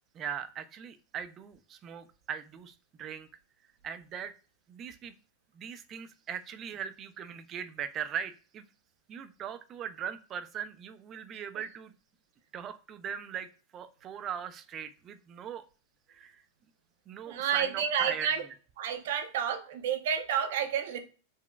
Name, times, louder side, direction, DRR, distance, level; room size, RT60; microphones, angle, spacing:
voice 1, 0.1-3.3 3.8-4.3 4.7-5.2 5.5-8.6 9.1-11.9 12.5-15.6 16.1-16.4 17.1-18.3, right 8 dB, 30° right, 10 dB, 0.3 m, -39 dB
voice 2, 17.3-18.4 18.8-21.0, right 8 dB, 70° right, 7 dB, 0.6 m, -30 dB
3.9 x 2.1 x 2.2 m, 0.36 s
supercardioid pair, 135°, 0 cm